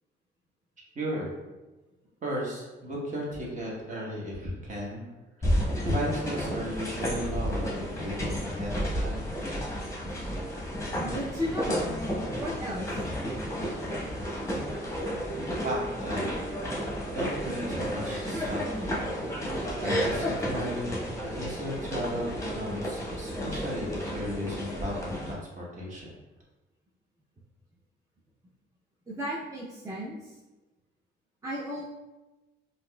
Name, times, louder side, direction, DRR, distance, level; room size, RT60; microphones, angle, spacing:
voice 1, 0.9-1.3 2.2-5.1 5.4-9.3 15.6-16.5 17.1-18.7 19.8-26.1, equal, 40° right, -3 dB, 1.1 m, -35 dB
sound 1, 5.4-25.3, equal, 15° left, 0.9 m, -32 dB
voice 2, 10.9-11.9 12.3-12.9 29.1-30.4 31.4-31.8, equal, 15° right, -5 dB, 0.5 m, -34 dB
3.9 x 2.5 x 2.2 m, 1.1 s
cardioid pair, 90°, 20 cm